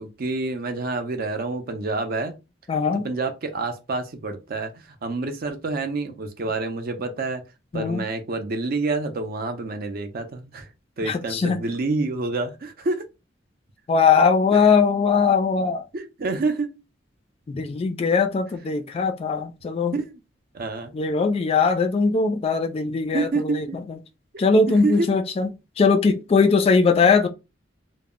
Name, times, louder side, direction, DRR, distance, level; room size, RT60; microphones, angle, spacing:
voice 1, 0.0-2.3 3.0-7.4 7.7-10.7 11.0-13.0 14.5-14.6 15.9-16.7 19.9-20.0 20.5-20.9 23.1-23.8 24.3-25.1, right 3 dB, 55° right, 0.5 m, -28 dB
voice 2, 2.7-3.1 7.7-8.0 11.0-11.6 13.9-15.8 17.5-19.9 20.9-24.0 24.4-25.5 25.8-27.3, left 5 dB, 30° left, 0.3 m, -20 dB
2.0 x 2.0 x 3.6 m
head